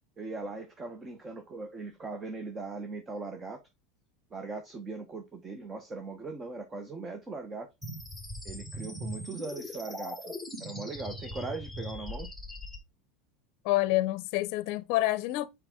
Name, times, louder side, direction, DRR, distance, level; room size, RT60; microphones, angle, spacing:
voice 1, 0.2-3.6 4.3-7.7 8.4-10.3 10.6-12.3, right 3 dB, 20° right, 0.9 m, -39 dB
sound 1, 7.8-12.8, equal, 5° right, 1.6 m, -40 dB
voice 2, 13.6-15.5, left 17 dB, 55° left, 0.6 m, -27 dB
5.9 x 4.8 x 3.6 m
supercardioid pair, 140°, 0 cm